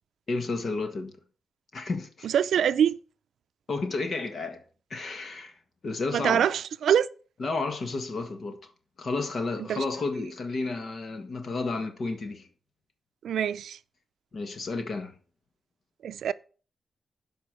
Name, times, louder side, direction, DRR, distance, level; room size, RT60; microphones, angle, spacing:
voice 1, 0.3-1.1 1.7-2.3 3.7-4.6 4.9-5.5 5.8-6.5 7.4-8.6 9.0-12.5 14.3-15.1, left 3 dB, 45° left, 1.6 m, -31 dB
voice 2, 2.2-3.0 6.1-7.1 9.6-9.8 13.2-13.8 16.0-16.3, right 9 dB, 85° right, 0.5 m, -24 dB
11.5 x 5.2 x 6.1 m
wide cardioid pair, 170°, 0 cm